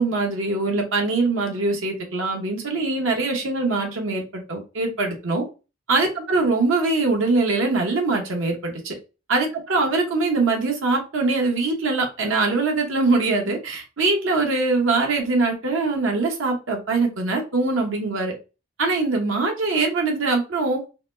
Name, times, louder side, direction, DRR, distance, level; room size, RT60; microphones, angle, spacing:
voice 1, 0.0-5.4 5.9-9.0 9.3-18.3 18.8-20.8, right 3 dB, 90° right, 1.0 m, -22 dB
4.0 x 2.1 x 2.6 m
head